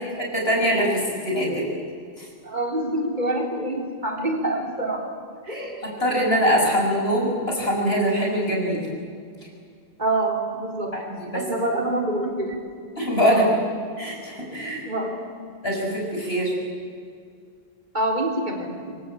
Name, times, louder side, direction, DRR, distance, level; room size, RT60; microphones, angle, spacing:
voice 1, 0.3-1.7 2.2-2.3 5.5-5.6 6.0-8.8 11.3-11.4 13.0-13.5 14.0-14.8 15.6-16.5, equal, 75° left, -1 dB, 6.9 m, -22 dB
voice 2, 1.5-1.8 2.4-5.1 5.5-5.8 10.0-11.0 11.3-12.6 13.2-13.6 14.8-15.3 17.9-19.0, right 2 dB, 45° right, 1 dB, 4.1 m, -26 dB
26.0 x 24.0 x 8.7 m, 2.3 s
omnidirectional pair, 1.0 m